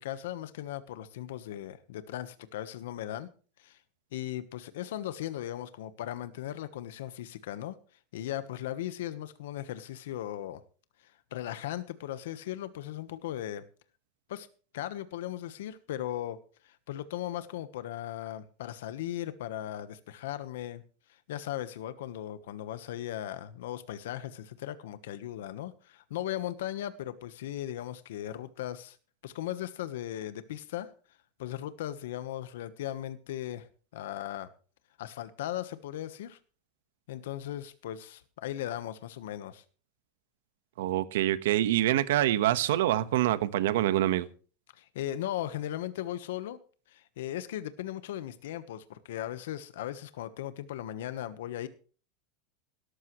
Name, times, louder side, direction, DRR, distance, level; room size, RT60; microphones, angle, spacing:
voice 1, 0.0-3.3 3.6-3.8 4.1-7.8 8.1-10.6 11.0-13.6 14.3-14.5 14.7-16.4 16.6-20.8 21.1-29.0 29.2-30.9 31.4-33.7 33.9-34.5 35.0-36.4 37.1-39.6 44.7-46.6 46.9-51.7, left 12 dB, 75° left, 1.2 m, -37 dB
voice 2, 40.8-44.3, right 13 dB, 75° right, 1.3 m, -26 dB
18.0 x 13.0 x 3.2 m
supercardioid pair, 180°, 0 cm